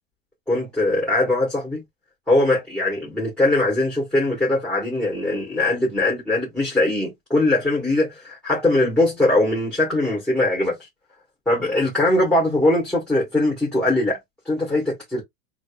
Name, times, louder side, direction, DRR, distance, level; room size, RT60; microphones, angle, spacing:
voice 1, 0.5-1.8 2.3-10.9 11.4-14.2 14.4-15.2, left 2 dB, ahead, 1.8 m, -21 dB
6.1 x 2.3 x 2.3 m
supercardioid pair, 135°, 40 cm